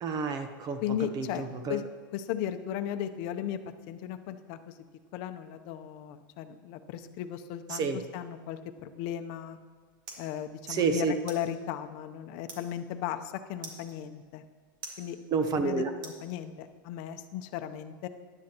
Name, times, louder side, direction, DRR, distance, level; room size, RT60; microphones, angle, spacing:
voice 1, 0.0-0.8 1.2-1.8 7.7-8.0 10.7-11.1 15.3-15.9, right 5 dB, 35° right, 8 dB, 0.8 m, -29 dB
voice 2, 0.8-1.8 2.1-3.6 3.9-4.7 5.1-9.6 10.2-14.4 15.0-15.2 15.6-18.1, left 10 dB, 50° left, 8 dB, 0.8 m, -36 dB
sound 1, 9.2-16.8, right 3 dB, 65° right, 2.4 m, -51 dB
15.0 x 11.0 x 3.0 m, 1.5 s
supercardioid pair, 130°, 12 cm